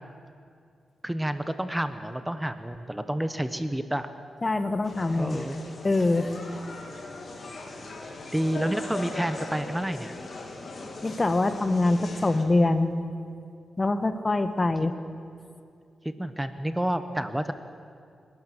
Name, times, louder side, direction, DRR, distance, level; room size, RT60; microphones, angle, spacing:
voice 1, 1.0-4.1 5.2-5.6 8.3-10.1 16.0-17.5, right 1 dB, 10° right, 10 dB, 1.0 m, -29 dB
voice 2, 4.4-5.4 5.8-6.3 11.0-12.9 13.8-14.9, left 2 dB, 35° left, 10 dB, 1.5 m, -24 dB
sound 1, 4.8-12.4, left 2 dB, 55° left, 3.1 m, -40 dB
29.0 x 12.0 x 7.9 m, 2.4 s
cardioid pair, 60°, 0 cm